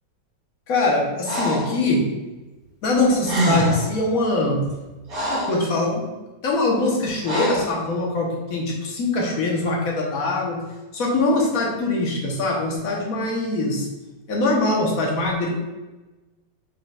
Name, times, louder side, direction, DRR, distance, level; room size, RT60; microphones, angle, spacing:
voice 1, 0.7-2.1 2.8-4.7 5.3-6.1 6.4-10.6 10.9-13.9 14.3-15.5, left 2 dB, 55° left, -1 dB, 1.3 m, -22 dB
Breathing, 1.3-1.8 3.0-3.1 3.2-3.9 4.6-5.7 7.2-7.8, equal, 55° right, 1.6 m, -24 dB
5.1 x 4.4 x 2.3 m, 1.1 s
omnidirectional pair, 2.0 m